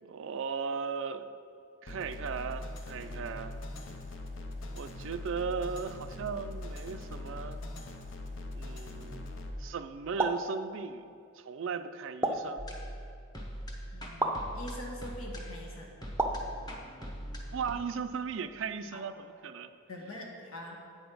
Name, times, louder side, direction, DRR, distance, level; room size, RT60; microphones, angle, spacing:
voice 1, 0.0-1.3 1.8-3.6 4.7-7.6 8.5-9.3 9.6-12.7 17.5-19.7, right 5 dB, 60° right, 10 dB, 0.4 m, -37 dB
sound 1, 1.9-9.5, left 2 dB, 65° left, 0.7 m, -41 dB
sound 2, 10.2-10.5 12.2-12.6 14.2-14.4 16.2-16.5, right 2 dB, 10° right, 0.5 m, -30 dB
sound 3, 12.6-17.7, equal, 20° left, 0.9 m, -42 dB
voice 2, 13.9-15.9 18.9-19.0 19.9-20.8, left 1 dB, 90° left, -1 dB, 1.5 m, -44 dB
8.4 x 5.1 x 6.2 m, 2.3 s
head